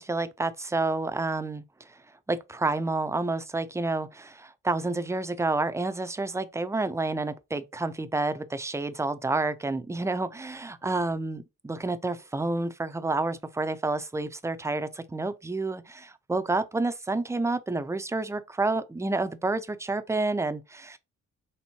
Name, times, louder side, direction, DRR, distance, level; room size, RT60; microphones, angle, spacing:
voice 1, 0.0-1.6 1.9-2.0 2.3-21.0, right 2 dB, 10° right, 0.3 m, -29 dB
4.4 x 3.5 x 2.7 m
wide cardioid pair, 155°, 32 cm